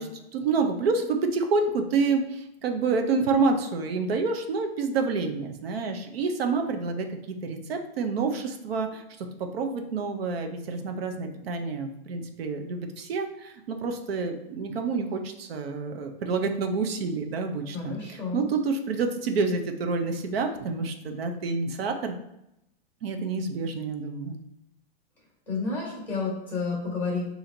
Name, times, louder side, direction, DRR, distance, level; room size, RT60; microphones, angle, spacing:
voice 1, 0.0-22.1 23.0-24.4, right 4 dB, 80° right, 5 dB, 0.7 m, -28 dB
voice 2, 17.7-18.4 25.5-27.2, left 4 dB, 5° left, -3 dB, 1.2 m, -30 dB
4.4 x 2.8 x 3.8 m, 0.83 s
supercardioid pair, 175°, 30 cm